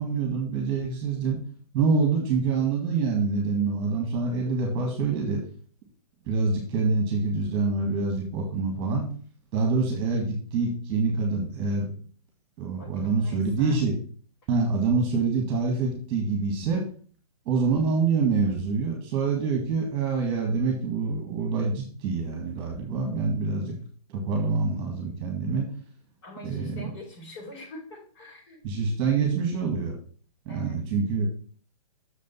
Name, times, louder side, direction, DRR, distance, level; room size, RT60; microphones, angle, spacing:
voice 1, 0.0-1.4 1.7-5.4 6.3-9.1 9.5-11.9 12.6-13.9 14.5-16.8 17.5-23.7 24.1-25.7 26.4-26.9 28.6-30.0 30.5-31.3, right 4 dB, 25° right, 2 dB, 1.9 m, -26 dB
voice 2, 12.8-13.8 26.2-28.6 30.5-30.8, left 1 dB, 40° left, -2 dB, 4.8 m, -44 dB
6.6 x 5.2 x 5.6 m, 0.43 s
hypercardioid pair, 155°, 20 cm